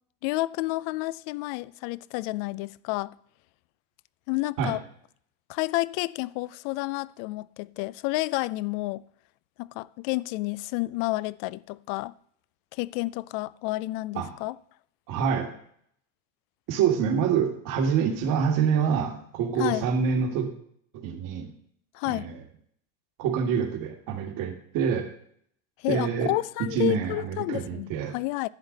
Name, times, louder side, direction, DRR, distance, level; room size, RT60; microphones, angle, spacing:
voice 1, 0.2-3.1 4.3-4.8 5.5-9.0 9.6-12.1 12.7-14.6 19.6-19.9 21.9-22.3 25.8-28.5, left 20 dB, 65° left, 0.5 m, -30 dB
voice 2, 15.1-15.5 16.7-20.5 20.9-21.5 22.1-22.4 23.2-25.1 25.9-26.3 26.6-28.2, right 7 dB, 60° right, 2.1 m, -26 dB
11.5 x 8.0 x 4.0 m
supercardioid pair, 115°, 37 cm